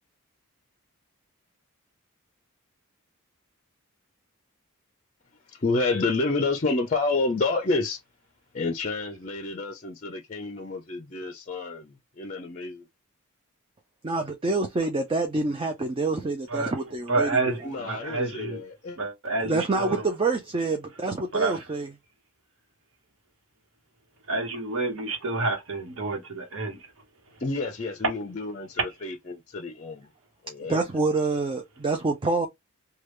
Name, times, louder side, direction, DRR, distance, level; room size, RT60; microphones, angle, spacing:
voice 1, 5.6-8.0 8.5-12.8 17.5-19.0 27.4-30.1 30.4-30.8, left 3 dB, 35° left, 0.5 m, -29 dB
voice 2, 14.0-17.3 19.4-21.9 30.7-32.5, right 3 dB, 25° right, 0.4 m, -26 dB
voice 3, 17.1-18.6 19.0-20.1 21.3-21.6 24.3-26.8, right 3 dB, 65° right, 1.1 m, -29 dB
3.3 x 2.3 x 3.1 m
head